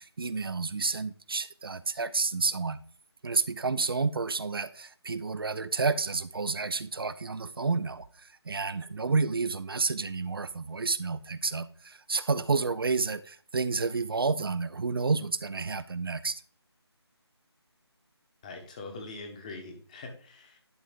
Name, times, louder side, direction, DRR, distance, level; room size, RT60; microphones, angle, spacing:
voice 1, 0.0-2.8 3.2-8.1 8.5-16.4, right 4 dB, 55° right, 0.6 m, -30 dB
voice 2, 18.4-20.6, left 3 dB, 15° left, 1.1 m, -43 dB
11.0 x 3.7 x 5.1 m
figure-of-eight pair, 165°, 14 cm